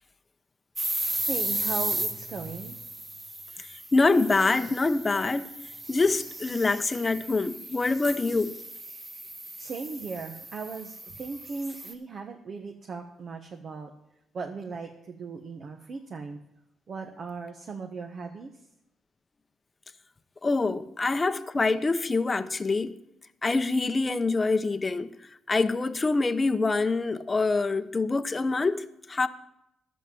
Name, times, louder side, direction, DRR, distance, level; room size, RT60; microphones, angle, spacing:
sound 1, 0.8-11.9, right 1 dB, 20° right, 1.7 m, -35 dB
voice 1, 1.3-2.8 9.6-13.9 14.3-16.4 16.9-18.5, right 4 dB, 50° right, 1.2 m, -37 dB
voice 2, 3.9-5.4 5.9-8.5 20.4-22.9 23.4-25.1 25.5-29.3, left 3 dB, 25° left, 0.7 m, -25 dB
11.5 x 7.4 x 7.7 m
cardioid pair, 90°, 0 cm